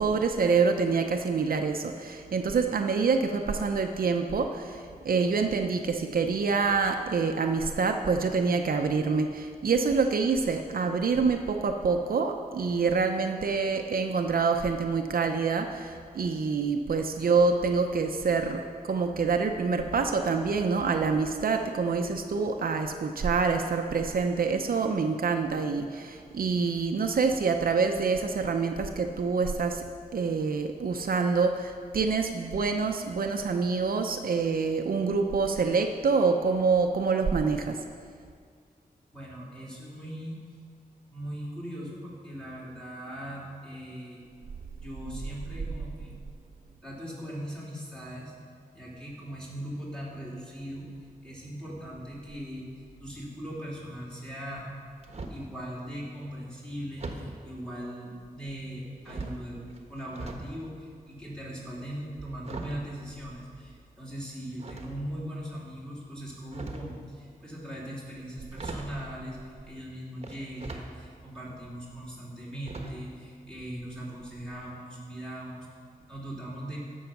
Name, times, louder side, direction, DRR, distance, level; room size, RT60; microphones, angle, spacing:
voice 1, 0.0-29.8 30.1-37.8, right 4 dB, 70° right, 4 dB, 0.7 m, -26 dB
voice 2, 39.1-40.4 41.1-44.2 44.8-46.1 46.8-48.3 48.7-50.9 51.2-52.6 53.0-54.7 55.3-59.6 59.9-75.7 76.1-76.8, equal, 5° left, -6 dB, 3.2 m, -39 dB
sound 1, 54.6-55.5 57.0-57.4 58.2-58.7 59.0-60.5 60.8-63.8 64.6-65.3 66.3-67.0 68.1-68.2 68.5-69.0 70.2-70.9 71.4-71.5 72.6-73.2 73.4-73.6 73.9-74.0, right 3 dB, 40° right, 1.2 m, -41 dB
15.0 x 6.4 x 5.9 m, 2.1 s
wide cardioid pair, 120°, 16 cm